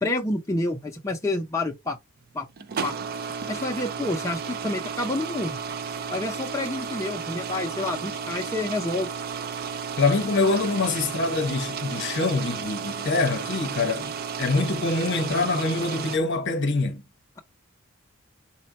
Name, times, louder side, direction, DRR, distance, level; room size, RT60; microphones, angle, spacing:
voice 1, 0.0-2.0 2.3-2.5 2.8-2.9 3.5-5.6 6.1-9.1, left 2 dB, 15° left, 0.5 m, -28 dB
sound 1, 2.5-16.2, right 6 dB, 45° right, 0.4 m, -33 dB
voice 2, 10.0-14.1 14.4-17.0, left 3 dB, 55° left, 0.9 m, -25 dB
4.2 x 2.2 x 4.0 m
head